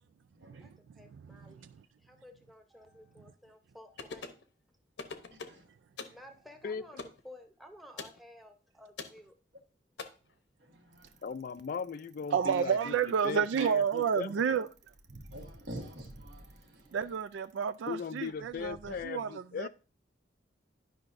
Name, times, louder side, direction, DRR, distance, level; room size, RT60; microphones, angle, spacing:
voice 1, 0.3-0.7 5.3-5.6 10.6-11.3 15.3-17.1, right 1 dB, 65° right, 1.5 m, -48 dB
voice 2, 1.0-1.6 2.2-4.2 6.1-9.3, left 1 dB, ahead, 0.8 m, -53 dB
sound 1, 4.0-4.4 5.0-5.6 6.0-6.2 7.0-7.2 8.0-8.2 9.0-9.2 10.0-10.1, left 4 dB, 65° left, 0.8 m, -42 dB
Bicycle, 10.9-19.0, right 1 dB, 40° right, 0.8 m, -54 dB
voice 3, 11.2-12.8 13.2-14.6 17.9-19.7, left 6 dB, 50° left, 0.3 m, -38 dB
voice 4, 12.3-14.7 16.9-19.7, right 7 dB, 80° right, 0.3 m, -30 dB
10.5 x 5.5 x 2.6 m
head